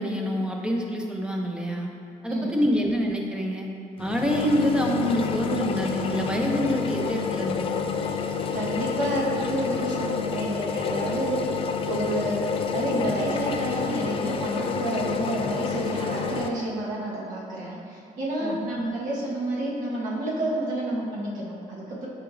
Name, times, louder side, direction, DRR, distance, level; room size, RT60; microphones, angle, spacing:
voice 1, 0.0-1.9 2.2-3.7 4.0-7.9 18.4-18.8, equal, 5° right, 0 dB, 0.6 m, -26 dB
voice 2, 2.3-2.7 6.3-6.6 8.2-22.1, right 1 dB, 70° right, -5 dB, 1.3 m, -30 dB
sound 1, 4.0-16.5, left 6 dB, 40° left, 0.4 m, -29 dB
7.7 x 4.9 x 2.5 m, 2.6 s
cardioid pair, 135°, 14 cm